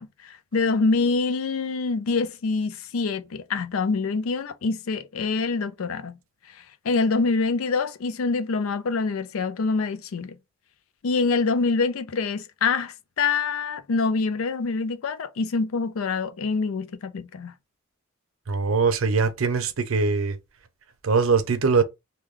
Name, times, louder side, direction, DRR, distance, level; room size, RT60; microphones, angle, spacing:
voice 1, 0.0-6.2 6.8-10.4 11.0-17.5, left 4 dB, 80° left, 0.4 m, -25 dB
voice 2, 18.5-20.4 21.0-21.8, right 4 dB, 75° right, 0.5 m, -22 dB
3.1 x 2.3 x 3.6 m
head